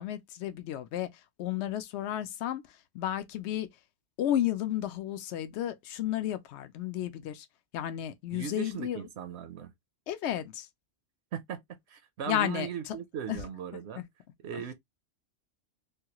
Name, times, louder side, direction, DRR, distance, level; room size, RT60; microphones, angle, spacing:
voice 1, 0.0-3.7 4.2-7.5 7.7-9.0 10.1-10.7 12.3-13.0 13.3-13.4 14.0-14.1 14.5-14.6, left 12 dB, 80° left, 0.8 m, -33 dB
voice 2, 8.3-9.7 11.3-14.0 14.4-14.7, right 8 dB, 75° right, 0.8 m, -38 dB
3.3 x 2.3 x 2.8 m
omnidirectional pair, 1.2 m